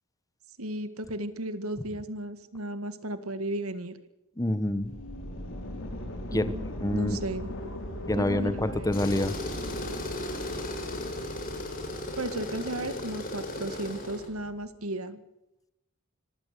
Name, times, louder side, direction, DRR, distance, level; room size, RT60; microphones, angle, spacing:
voice 1, 0.6-4.0 6.3-6.6 6.9-7.5 8.1-9.0 12.2-15.2, right 1 dB, 75° right, 11 dB, 1.9 m, -35 dB
voice 2, 4.4-4.9 6.3-6.5 6.8-7.2 8.1-9.3, left 1 dB, 15° left, 12 dB, 1.3 m, -27 dB
sound 1, 4.7-14.7, left 1 dB, 65° left, 5.5 m, -40 dB
Tools, 8.9-14.3, left 1 dB, 40° left, 6.5 m, -36 dB
25.5 x 16.0 x 6.9 m, 0.91 s
head